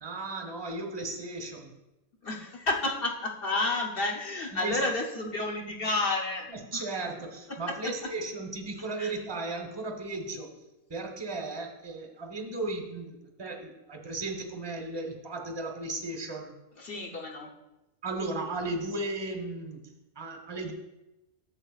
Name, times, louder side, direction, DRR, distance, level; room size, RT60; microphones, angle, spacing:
voice 1, 0.0-1.7 4.5-4.8 6.5-10.5 10.9-16.5 18.0-20.7, right 2 dB, 20° right, 2 dB, 1.0 m, -35 dB
voice 2, 2.2-6.5 6.7-6.8 9.0-9.1 16.8-17.5, left 2 dB, 45° left, 1 dB, 1.0 m, -30 dB
11.0 x 7.5 x 2.4 m, 0.97 s
omnidirectional pair, 1.5 m